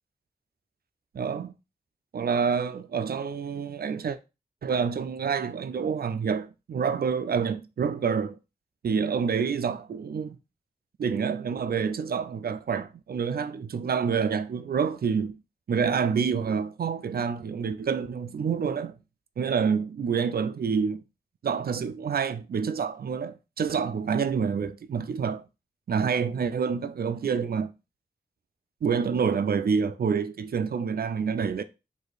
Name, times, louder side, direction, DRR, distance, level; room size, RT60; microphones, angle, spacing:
voice 1, 1.2-1.5 2.1-4.2 4.6-8.4 8.8-10.4 11.0-15.4 15.7-19.0 19.4-21.0 21.4-25.4 25.9-27.7 28.8-31.6, right 6 dB, 70° right, 0.4 m, -27 dB
4.9 x 2.7 x 3.9 m
wide cardioid pair, 85°, 16 cm